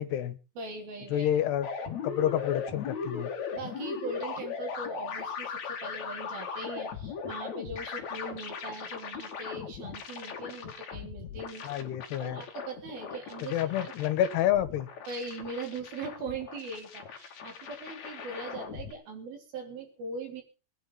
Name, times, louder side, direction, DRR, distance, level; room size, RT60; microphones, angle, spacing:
voice 1, 0.0-0.4 1.1-1.7 2.0-3.3 11.6-12.4 13.5-14.9, left 11 dB, 80° left, 14 dB, 3.3 m, -28 dB
voice 2, 0.6-1.3 3.5-11.8 12.2-13.9 15.1-20.4, right 3 dB, 60° right, 3 dB, 5.7 m, -40 dB
sound 1, 1.6-18.9, left 6 dB, 50° left, 3.2 m, -39 dB
21.0 x 10.0 x 5.7 m, 0.35 s
omnidirectional pair, 4.8 m